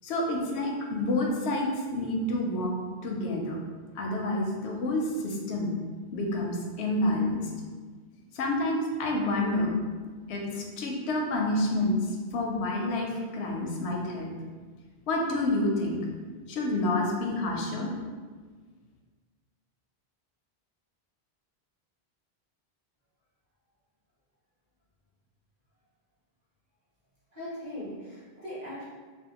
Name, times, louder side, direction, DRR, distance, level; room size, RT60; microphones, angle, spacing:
voice 1, 0.0-2.7 3.0-3.6 4.0-5.7 6.1-7.5 8.3-9.7 10.3-12.0 12.3-14.3 15.1-16.0 16.5-17.9, left 1 dB, 90° left, 0 dB, 0.9 m, -28 dB
voice 2, 27.3-28.8, left 1 dB, 40° right, -9 dB, 1.2 m, -39 dB
3.3 x 2.4 x 2.8 m, 1.5 s
omnidirectional pair, 1.1 m